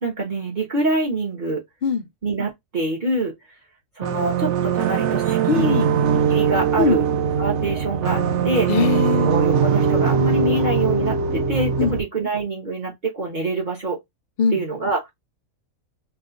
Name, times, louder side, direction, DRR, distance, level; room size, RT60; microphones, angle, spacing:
voice 1, 0.0-1.6 2.2-3.3 4.0-5.9 6.3-7.0 7.4-8.7 9.2-14.0 14.5-15.0, right 2 dB, 40° right, 0.9 m, -25 dB
sound 1, 4.0-12.0, right 7 dB, 65° right, 0.7 m, -21 dB
voice 2, 5.5-5.9 6.8-7.0 8.7-9.3 11.8-12.0 14.4-14.6, left 6 dB, 80° left, 0.4 m, -21 dB
2.7 x 2.3 x 3.7 m
omnidirectional pair, 1.5 m